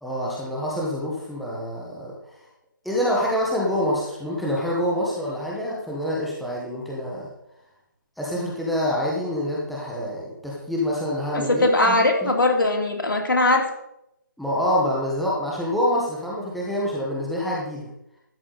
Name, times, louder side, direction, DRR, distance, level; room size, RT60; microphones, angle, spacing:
voice 1, 0.0-2.2 2.8-7.3 8.2-12.3 14.4-17.9, equal, ahead, -6 dB, 1.0 m, -26 dB
voice 2, 11.3-13.6, left 2 dB, 85° left, 2 dB, 2.7 m, -20 dB
12.5 x 8.3 x 3.9 m, 0.82 s
hypercardioid pair, 170°, 11 cm